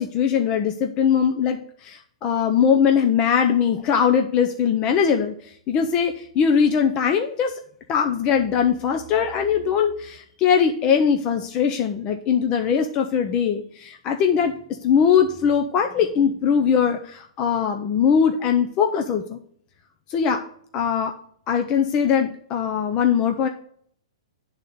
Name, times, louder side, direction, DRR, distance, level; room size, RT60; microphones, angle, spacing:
voice 1, 0.0-5.3 5.7-7.6 7.9-19.4 20.1-20.4 20.7-21.1 21.5-23.5, left 7 dB, 25° left, 4 dB, 0.5 m, -21 dB
9.0 x 4.0 x 6.5 m, 0.63 s
hypercardioid pair, 155°, 3 cm